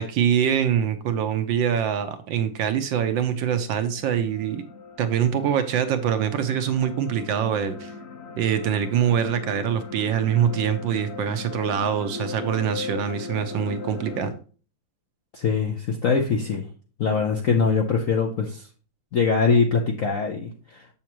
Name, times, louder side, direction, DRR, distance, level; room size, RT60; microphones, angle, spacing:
voice 1, 0.0-4.6 5.0-7.9 8.4-14.3, right 8 dB, 70° right, 9 dB, 1.3 m, -24 dB
sound 1, 2.7-14.3, left 4 dB, 40° left, 1.0 m, -38 dB
voice 2, 15.3-16.7 17.0-18.7 19.1-20.9, left 5 dB, 65° left, 2 dB, 0.8 m, -23 dB
7.2 x 7.1 x 3.0 m, 0.39 s
omnidirectional pair, 2.4 m